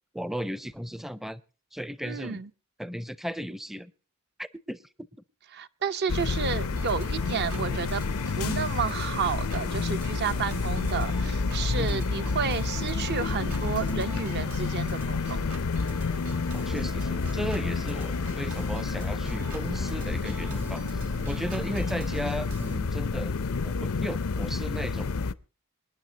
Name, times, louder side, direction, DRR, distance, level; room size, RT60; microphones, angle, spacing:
voice 1, 0.1-1.4 1.7-2.4 2.8-3.9 4.4-4.8 7.6-7.8 11.8-12.1 16.5-23.4 23.6-25.1, equal, ahead, 0.5 m, -36 dB
voice 2, 2.0-2.5 5.5-8.0 8.4-15.5, right 6 dB, 50° right, 0.7 m, -31 dB
sound 1, 6.1-25.3, left 4 dB, 75° left, 0.6 m, -29 dB
Organ, 6.8-22.8, right 3 dB, 90° right, 1.9 m, -43 dB
26.0 x 10.0 x 2.9 m
head